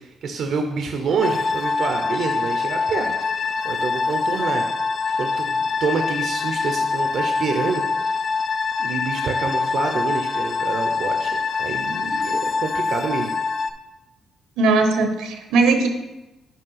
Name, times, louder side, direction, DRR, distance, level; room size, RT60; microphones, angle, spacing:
voice 1, 0.0-3.1 3.6-4.6 5.2-8.2 8.8-13.3, right 4 dB, 65° right, 4 dB, 0.7 m, -27 dB
sound 1, 1.2-13.7, left 4 dB, 45° left, 0.4 m, -24 dB
voice 2, 14.6-15.9, right 3 dB, 90° right, 6 dB, 0.9 m, -18 dB
5.6 x 4.4 x 5.6 m, 1.0 s
cardioid pair, 90°, 0 cm